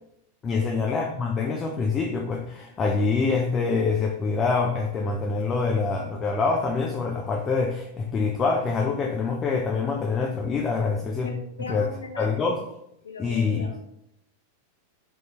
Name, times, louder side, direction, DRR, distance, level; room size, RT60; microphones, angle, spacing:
voice 1, 0.4-11.3 11.7-11.9 12.2-12.6 13.2-13.7, left 4 dB, 25° left, 1 dB, 0.4 m, -25 dB
voice 2, 11.2-12.3 13.0-13.8, left 3 dB, 75° left, 4 dB, 0.5 m, -39 dB
3.7 x 2.7 x 2.8 m, 0.79 s
figure-of-eight pair, 90°, 0 cm